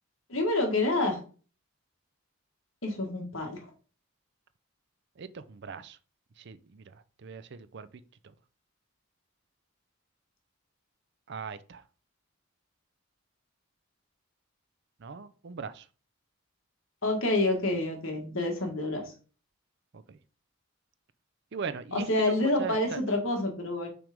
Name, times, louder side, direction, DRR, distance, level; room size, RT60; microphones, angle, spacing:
voice 1, 0.3-1.2 2.8-3.6 17.0-19.1 21.9-23.9, left 2 dB, 70° left, 1.7 m, -28 dB
voice 2, 5.2-6.0 6.4-6.9 7.2-7.9 11.3-11.8 15.0-15.8 19.9-20.2 21.5-23.0, right 6 dB, 55° right, 0.5 m, -39 dB
6.0 x 3.4 x 5.1 m
head